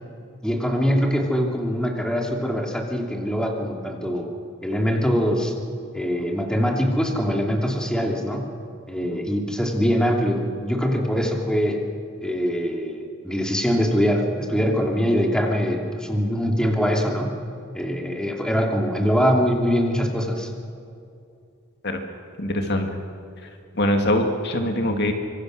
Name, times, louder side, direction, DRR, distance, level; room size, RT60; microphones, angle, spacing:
voice 1, 0.4-4.3 4.6-5.5 5.9-8.5 8.9-11.8 12.2-17.3 17.7-20.5, equal, 5° left, 1 dB, 2.7 m, -23 dB
voice 2, 22.4-23.0 23.8-25.1, left 1 dB, 55° left, 4 dB, 2.1 m, -23 dB
25.5 x 24.5 x 6.5 m, 2.5 s
head